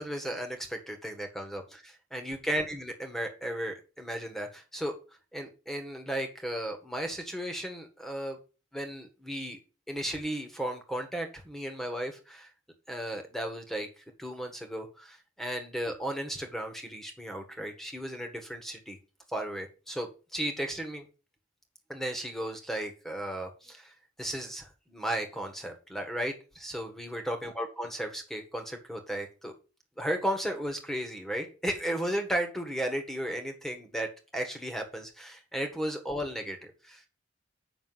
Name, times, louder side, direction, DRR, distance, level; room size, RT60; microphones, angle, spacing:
voice 1, 0.0-4.9 5.3-8.4 8.7-9.6 9.9-12.5 12.9-19.0 19.3-21.0 21.9-29.5 30.0-37.1, right 1 dB, ahead, 5 dB, 1.6 m, -35 dB
8.0 x 6.2 x 5.7 m, 0.34 s
head